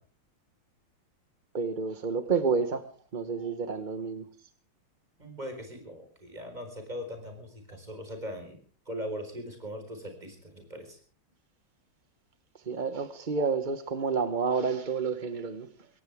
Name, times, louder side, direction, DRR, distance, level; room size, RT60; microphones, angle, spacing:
voice 1, 1.5-2.9 3.1-4.3 12.5-15.9, right 5 dB, 40° right, 10 dB, 0.6 m, -30 dB
voice 2, 5.2-8.6 8.8-11.0, equal, 20° right, 5 dB, 4.7 m, -40 dB
22.0 x 17.5 x 3.5 m, 0.42 s
omnidirectional pair, 2.3 m